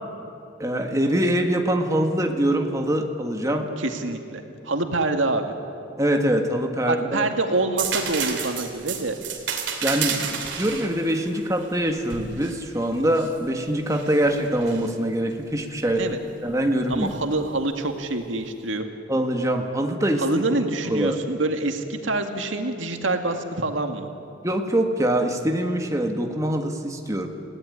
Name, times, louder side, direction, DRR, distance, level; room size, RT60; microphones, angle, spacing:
voice 1, 0.6-3.7 6.0-7.3 9.8-16.1 16.4-17.1 19.1-20.3 20.9-21.2 24.4-27.3, right 1 dB, 15° right, 3 dB, 1.7 m, -24 dB
voice 2, 3.8-5.5 6.9-9.2 16.0-16.2 16.9-18.9 20.2-24.1, right 2 dB, 85° right, 5 dB, 2.1 m, -26 dB
sound 1, 7.8-13.4 13.9-14.9 16.9-17.1, right 7 dB, 65° right, 2.8 m, -31 dB
28.5 x 17.5 x 10.0 m, 2.7 s
head